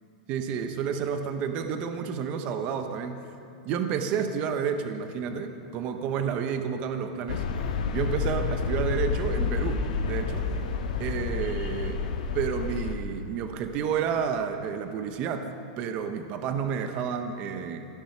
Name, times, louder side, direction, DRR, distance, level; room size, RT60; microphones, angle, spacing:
voice 1, 0.3-3.2 3.6-7.4 7.9-10.5 11.0-12.0 12.3-15.5 15.8-17.9, right 7 dB, 30° right, 7 dB, 0.8 m, -30 dB
sound 1, 7.3-12.9, left 5 dB, 80° left, 1.5 m, -29 dB
16.0 x 11.0 x 5.9 m, 3.0 s
supercardioid pair, 170°, 4 cm